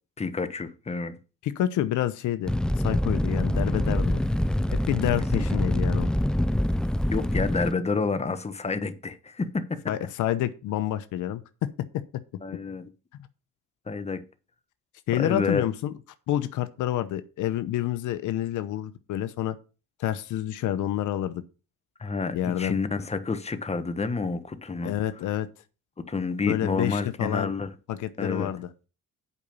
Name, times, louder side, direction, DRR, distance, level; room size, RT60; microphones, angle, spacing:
voice 1, 0.2-1.2 5.4-5.5 7.1-9.8 12.4-12.9 13.9-14.2 15.1-15.7 22.0-24.9 26.0-27.7 28.2-28.5, left 4 dB, 20° left, 1.1 m, -29 dB
voice 2, 1.4-4.2 4.7-6.1 9.9-12.0 15.1-15.9 16.3-19.5 20.0-21.4 22.3-22.7 24.8-25.5 26.5-27.5 27.9-28.7, left 12 dB, 80° left, 0.8 m, -28 dB
Fire, 2.5-7.7, left 1 dB, 5° left, 0.4 m, -25 dB
8.4 x 5.3 x 6.9 m
cardioid pair, 90°, 30 cm